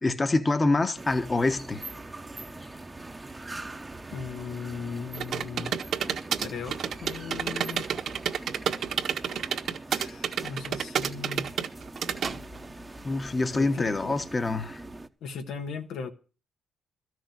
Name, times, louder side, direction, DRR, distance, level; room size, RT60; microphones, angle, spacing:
voice 1, 0.0-1.8 13.0-14.8, left 2 dB, 25° left, 1.2 m, -26 dB
sound 1, 0.9-15.1, right 2 dB, 15° right, 1.0 m, -43 dB
voice 2, 4.1-5.7 6.4-7.8 9.9-11.5 13.5-14.2 15.2-16.1, left 5 dB, 80° left, 1.4 m, -37 dB
sound 2, 5.1-12.3, right 8 dB, 70° right, 1.7 m, -29 dB
Squeak, 6.0-8.8 9.1-9.5 9.8-9.9 10.3-10.4 10.7-10.8 11.0-12.9 13.7-13.8, right 5 dB, 40° right, 1.2 m, -45 dB
13.5 x 6.3 x 9.0 m
cardioid pair, 90°, 0 cm